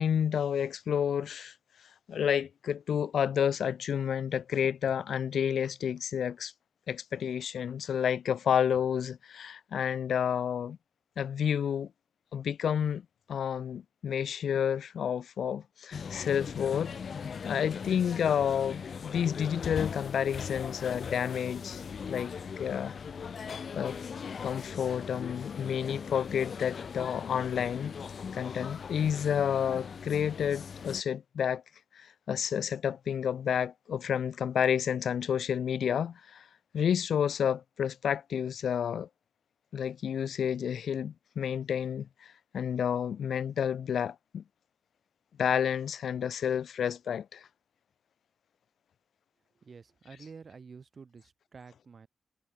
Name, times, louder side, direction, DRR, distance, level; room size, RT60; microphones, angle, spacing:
voice 1, 0.0-1.5 2.1-6.5 6.9-10.8 11.2-11.9 12.3-13.0 13.3-17.0 17.4-23.0 23.7-24.0 24.4-27.9 28.3-31.6 31.9-36.5 36.7-39.1 39.7-44.4 45.4-47.5, left 8 dB, 85° left, 0.6 m, -30 dB
sound 1, 15.9-31.0, left 6 dB, 65° left, 5.7 m, -39 dB
voice 2, 49.6-52.1, right 5 dB, 55° right, 4.7 m, -50 dB
cardioid pair, 65°, 0 cm